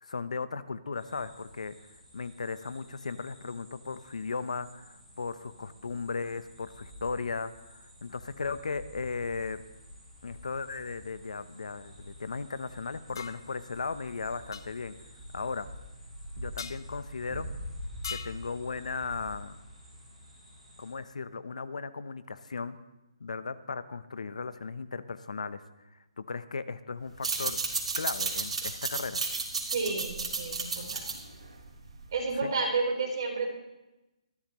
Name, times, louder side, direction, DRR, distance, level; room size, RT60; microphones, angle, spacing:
voice 1, 0.0-1.7 2.1-9.6 10.2-14.9 15.3-15.7 16.4-17.5 18.1-19.6 20.8-22.8 23.2-25.6 26.2-27.6 28.0-29.2 32.4-32.5, left 4 dB, 80° left, 13 dB, 0.9 m, -36 dB
sound 1, 0.9-20.9, equal, 5° left, 5.1 m, -47 dB
sound 2, 13.2-13.4 14.5-14.7 16.6-16.8 18.0-18.4, left 6 dB, 35° left, 0.5 m, -39 dB
sound 3, 27.1-32.3, right 4 dB, 65° right, 3.5 m, -33 dB
voice 2, 29.7-31.1 32.1-33.5, right 4 dB, 35° right, -2 dB, 4.0 m, -31 dB
21.0 x 14.5 x 3.1 m, 1.0 s
hypercardioid pair, 175°, 4 cm